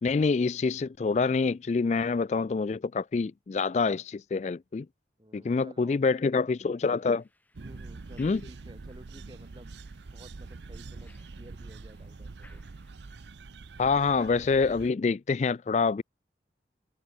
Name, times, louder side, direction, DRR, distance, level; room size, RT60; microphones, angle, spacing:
voice 1, 0.0-4.9 5.3-7.2 8.2-8.4 13.8-16.0, left 4 dB, 40° left, 0.3 m, -26 dB
voice 2, 5.2-6.4 7.6-12.6, equal, 25° right, 5.4 m, -53 dB
sound 1, 6.7-13.3, left 2 dB, 10° left, 4.9 m, -65 dB
sound 2, 7.5-14.9, right 3 dB, 80° right, 0.6 m, -45 dB
head